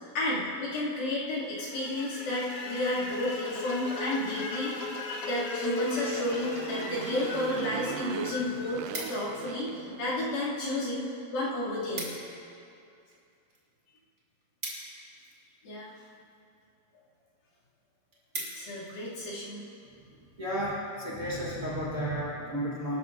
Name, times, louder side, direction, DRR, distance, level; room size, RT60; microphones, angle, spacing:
voice 1, 0.1-4.9 5.2-8.8 9.1-11.0 11.3-12.2 15.6-16.0 18.4-19.7, left 1 dB, 70° left, -8 dB, 4.6 m, -32 dB
sound 1, 1.5-9.6, left 2 dB, 50° left, 1.9 m, -38 dB
Motorcycle, 5.9-10.5, right 10 dB, 85° right, 2.0 m, -40 dB
sound 2, 8.9-9.5 10.2-10.8 11.1-11.2 11.4-11.5 11.7-12.4 12.7-15.6 16.3-16.6 17.1-17.2 17.6-17.7 17.9-18.9 19.4-19.6, right 2 dB, 25° right, 2.7 m, -41 dB
voice 2, 20.4-23.0, equal, 60° right, -7 dB, 0.7 m, -32 dB
24.5 x 13.5 x 2.7 m, 2.5 s
omnidirectional pair, 4.5 m